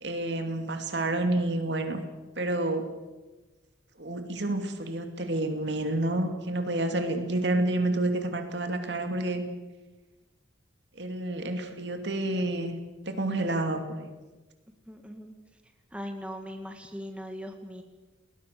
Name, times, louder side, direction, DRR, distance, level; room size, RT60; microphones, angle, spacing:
voice 1, 0.0-2.0 2.4-2.9 4.0-9.4 11.0-12.7 13.1-14.1, right 1 dB, 60° right, 6 dB, 2.7 m, -29 dB
voice 2, 14.9-15.3 15.9-17.8, equal, 5° right, 4 dB, 2.0 m, -39 dB
29.5 x 20.0 x 6.9 m, 1.2 s
head